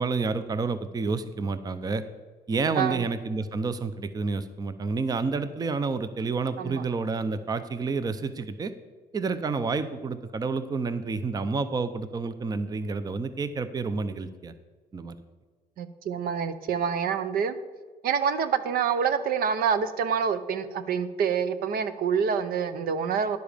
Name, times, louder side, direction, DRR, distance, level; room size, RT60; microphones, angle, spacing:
voice 1, 0.0-2.0 2.5-8.7 9.1-14.5 14.9-15.2, right 4 dB, 25° right, 12 dB, 0.6 m, -29 dB
voice 2, 15.8-17.5 18.0-23.4, right 7 dB, 60° right, 12 dB, 0.7 m, -27 dB
10.5 x 7.0 x 5.0 m, 1.4 s
cardioid pair, 110°, 17 cm